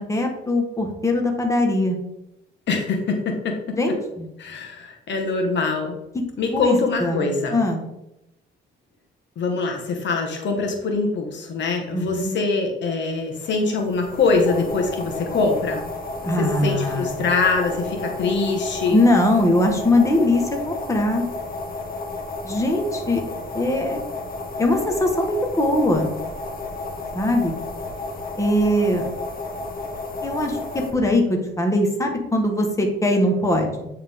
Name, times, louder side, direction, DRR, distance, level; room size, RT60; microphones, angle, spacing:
voice 1, 0.1-2.0 3.8-4.3 6.5-7.8 11.9-12.3 16.2-17.1 18.9-21.2 22.4-23.2 23.5-24.0 24.6-26.1 27.1-27.5 28.4-29.0 30.2-33.9, left 1 dB, 15° left, 2 dB, 1.3 m, -21 dB
voice 2, 2.7-3.8 4.4-5.9 6.4-7.6 9.4-15.8 16.4-19.0, left 3 dB, 65° left, 2 dB, 1.3 m, -23 dB
sound 1, 13.5-30.9, left 3 dB, 45° left, 1.3 m, -32 dB
9.3 x 3.7 x 3.6 m, 0.86 s
cardioid pair, 90°, 20 cm